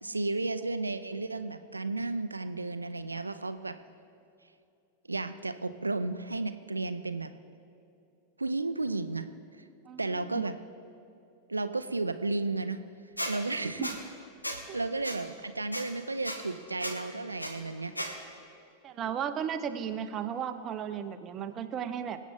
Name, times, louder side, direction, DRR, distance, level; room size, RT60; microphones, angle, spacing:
voice 1, 0.0-3.8 5.1-7.3 8.4-9.3 9.6-9.7 10.0-10.5 11.5-12.8 13.3-13.9 14.7-17.9, right 3 dB, 80° right, 11 dB, 0.6 m, -33 dB
voice 2, 9.9-10.4 13.8-13.9 14.7-14.8 18.8-22.2, right 8 dB, 30° right, 10 dB, 0.8 m, -35 dB
Squeak, 13.2-13.3 13.8-13.9 14.4-14.6 15.0-15.2 15.7-15.8 16.2-16.4 16.8-16.9 17.4-17.5 18.0-18.1, equal, 85° left, 1.3 m, -34 dB
24.5 x 8.2 x 3.8 m, 2.6 s
figure-of-eight pair, 90°, 0 cm